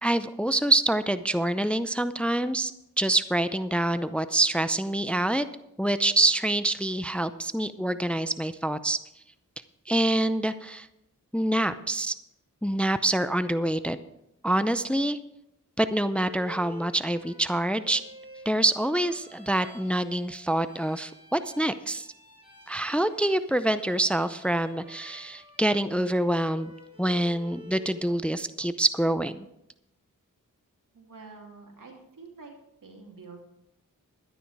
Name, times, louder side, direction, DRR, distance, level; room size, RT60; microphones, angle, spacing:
voice 1, 0.0-2.7 3.0-5.5 5.8-9.0 9.9-10.9 11.3-12.1 12.6-14.0 14.4-15.2 15.8-18.0 18.5-22.1 22.7-26.7 27.0-29.5, right 1 dB, 5° left, 12 dB, 0.5 m, -26 dB
Bowed string instrument, 16.0-28.1, left 2 dB, 15° right, 5.0 m, -50 dB
voice 2, 30.9-32.5 32.8-33.4, right 4 dB, 75° right, 1 dB, 2.7 m, -47 dB
12.0 x 10.5 x 4.8 m, 0.84 s
cardioid pair, 55°, 32 cm